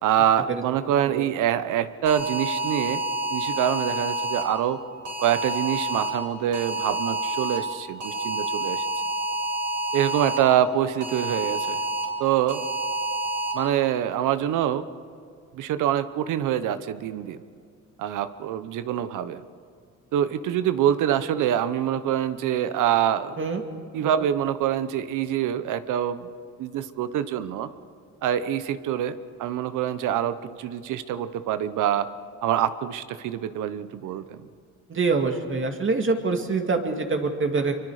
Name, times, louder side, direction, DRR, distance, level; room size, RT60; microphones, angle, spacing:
voice 1, 0.0-3.0 3.3-4.8 5.2-8.9 9.9-11.8 12.2-12.7 13.5-14.8 15.5-17.4 18.0-19.4 20.1-23.4 23.9-26.3 26.6-27.7 28.2-32.1 32.4-34.4, right 10 dB, 85° right, 13 dB, 1.0 m, -25 dB
sound 1, 2.1-4.4 5.1-6.1 6.5-7.6 8.0-10.4 11.0-12.0 12.5-13.5, right 2 dB, 65° right, 6.7 m, -28 dB
voice 2, 34.9-37.7, right 4 dB, 40° right, 4 dB, 2.4 m, -25 dB
26.0 x 24.0 x 5.0 m, 2.3 s
cardioid pair, 90°, 30 cm